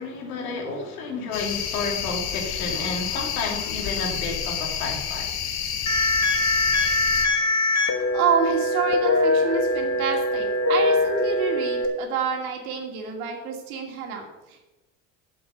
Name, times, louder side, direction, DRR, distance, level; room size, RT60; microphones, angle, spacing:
voice 1, 0.0-5.3, left 3 dB, 85° left, 0 dB, 2.7 m, -31 dB
sound 1, 1.3-7.3, left 8 dB, 60° left, 1.6 m, -29 dB
sound 2, 5.9-11.9, left 2 dB, 40° left, 2.1 m, -22 dB
voice 2, 8.1-14.7, right 6 dB, 85° right, 1 dB, 2.6 m, -28 dB
7.7 x 7.2 x 7.8 m, 1.1 s
hypercardioid pair, 75°, 42 cm